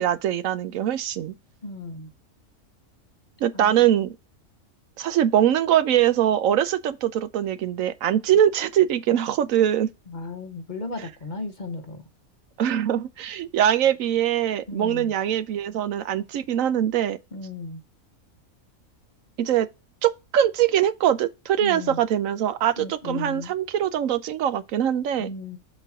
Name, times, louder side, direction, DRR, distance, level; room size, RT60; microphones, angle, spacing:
voice 1, 0.0-1.3 3.4-4.2 5.0-9.9 12.6-17.2 19.4-19.7 20.0-25.3, right 10 dB, 75° right, 1.0 m, -22 dB
voice 2, 1.6-2.1 3.5-3.8 10.1-12.0 14.7-15.1 17.3-17.8 21.6-22.0 22.8-23.5 25.2-25.6, left 3 dB, 40° left, 0.9 m, -35 dB
7.5 x 4.1 x 4.9 m
omnidirectional pair, 1.4 m